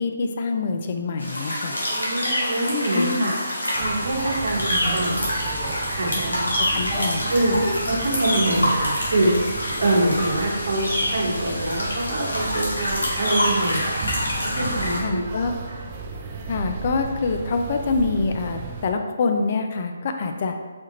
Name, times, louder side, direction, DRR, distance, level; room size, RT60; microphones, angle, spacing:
voice 1, 0.0-1.8 2.9-3.3 6.6-7.2 7.5-7.6 15.0-15.5 16.5-20.5, left 4 dB, 45° left, 5 dB, 0.3 m, -25 dB
sound 1, 1.2-15.0, equal, 85° left, 1.1 m, -26 dB
voice 2, 1.9-3.3 3.8-5.3 5.9-6.5 7.3-9.5 9.8-14.1 14.6-15.2 15.7-15.8, right 1 dB, 65° right, -3 dB, 1.0 m, -25 dB
sound 2, 3.7-18.9, right 4 dB, 35° right, 0.4 m, -35 dB
sound 3, 4.2-4.3 4.9-5.5 6.7-7.0 7.3-7.7 8.4-8.9 9.3-9.4, right 1 dB, ahead, 1.2 m, -34 dB
4.3 x 2.4 x 2.8 m, 1.4 s
figure-of-eight pair, 150°, 0 cm